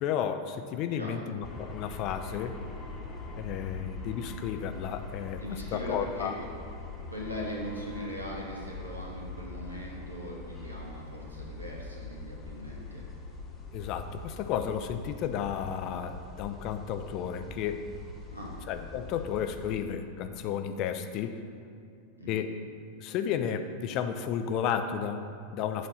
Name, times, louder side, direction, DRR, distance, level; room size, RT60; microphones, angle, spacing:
voice 1, 0.0-2.6 3.4-6.3 13.7-17.8 18.7-21.4 22.3-22.5 23.0-25.9, left 8 dB, 40° left, 8 dB, 0.4 m, -33 dB
sound 1, 1.4-19.8, left 3 dB, 20° left, 1.0 m, -43 dB
voice 2, 5.4-6.3 6.9-13.1 18.3-18.5 22.2-22.4, equal, 85° right, -3 dB, 1.4 m, -40 dB
7.7 x 4.1 x 5.6 m, 2.5 s
figure-of-eight pair, 90°, 0 cm